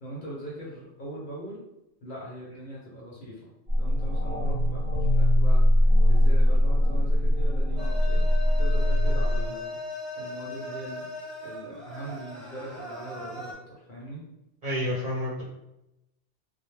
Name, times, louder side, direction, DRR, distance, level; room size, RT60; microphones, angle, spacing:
voice 1, 0.0-1.6 2.0-3.4 3.8-8.2 8.6-9.8 10.2-11.1 11.4-14.2, right 1 dB, 55° left, -5 dB, 0.8 m, -40 dB
sound 1, 3.7-9.5, left 1 dB, 70° right, 0.9 m, -21 dB
sound 2, 7.8-13.5, left 2 dB, ahead, 0.4 m, -38 dB
voice 2, 14.6-15.4, left 1 dB, 40° right, -8 dB, 0.8 m, -29 dB
2.2 x 2.1 x 3.1 m, 0.89 s
omnidirectional pair, 1.1 m